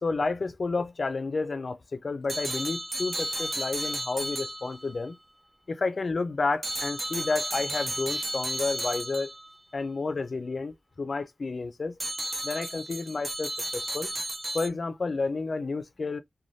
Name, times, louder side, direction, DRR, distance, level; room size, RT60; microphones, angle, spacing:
voice 1, 0.0-5.2 5.7-9.3 9.7-12.0 12.4-14.1 14.5-16.2, left 3 dB, 60° left, 0.4 m, -31 dB
sound 1, 2.3-5.1 6.6-9.6 12.0-14.7, right 1 dB, 30° right, 0.4 m, -33 dB
3.1 x 2.2 x 2.6 m
wide cardioid pair, 100°, 0 cm